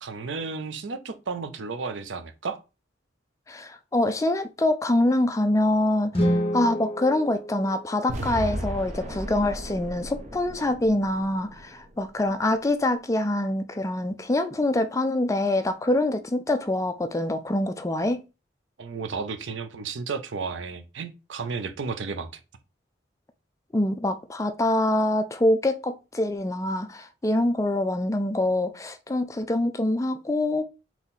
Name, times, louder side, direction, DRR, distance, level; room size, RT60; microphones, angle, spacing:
voice 1, 0.0-2.6 18.8-22.3, right 4 dB, 80° right, 0.6 m, -33 dB
voice 2, 3.5-18.2 23.7-30.6, left 1 dB, 15° left, 0.4 m, -25 dB
sound 1, 6.1-8.3, equal, 30° left, 1.0 m, -28 dB
sound 2, 8.1-12.2, right 1 dB, 40° right, 0.7 m, -35 dB
3.8 x 2.9 x 4.1 m
head